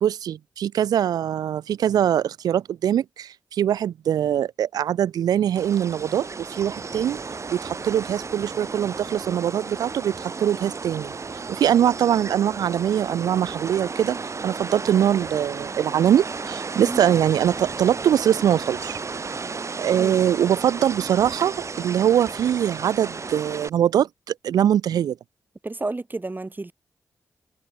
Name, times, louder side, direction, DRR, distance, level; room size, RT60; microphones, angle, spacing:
voice 1, 0.0-7.2 7.5-11.1 11.5-14.2 14.4-19.0 19.8-24.1 24.4-25.2, right 10 dB, 75° right, 0.5 m, -22 dB
sound 1, 5.6-23.7, right 4 dB, 45° right, 2.2 m, -34 dB
voice 2, 25.6-26.7, right 2 dB, 30° right, 1.8 m, -31 dB
supercardioid pair, 40°, 7 cm